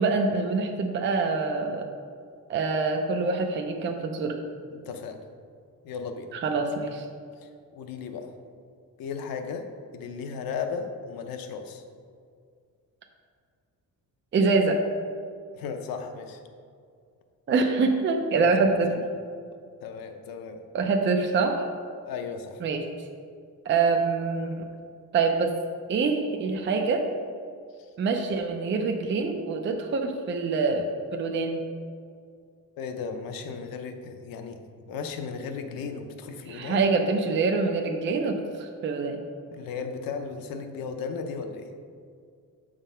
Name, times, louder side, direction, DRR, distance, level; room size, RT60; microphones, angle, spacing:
voice 1, 0.0-1.9 2.5-4.4 6.3-7.1 14.3-14.8 17.5-18.9 20.7-21.7 22.6-22.8 23.7-24.5 25.1-25.6 25.9-27.1 28.0-31.6 36.5-39.2, right 4 dB, 35° right, 4 dB, 0.5 m, -25 dB
voice 2, 4.7-5.2 5.8-6.3 7.4-8.3 9.0-9.7 9.9-11.8 15.5-16.4 18.3-18.5 18.9-19.0 19.8-20.6 22.0-22.6 27.8-27.9 32.8-34.6 34.9-36.8 39.5-41.7, left 5 dB, 90° left, 6 dB, 0.8 m, -35 dB
7.1 x 3.8 x 5.5 m, 2.2 s
cardioid pair, 145°, 34 cm